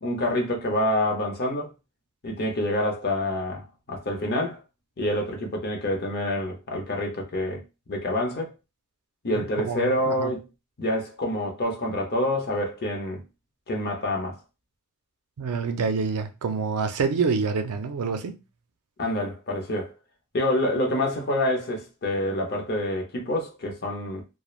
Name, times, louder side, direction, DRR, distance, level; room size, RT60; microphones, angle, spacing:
voice 1, 0.0-1.7 2.2-4.6 5.0-7.6 7.9-8.5 9.2-10.5 10.8-13.2 13.7-14.4 19.0-19.9 20.3-24.2, left 1 dB, 45° left, 0.7 m, -27 dB
voice 2, 9.3-10.3 15.4-18.4, right 5 dB, 85° right, 0.4 m, -27 dB
3.1 x 2.1 x 2.4 m
head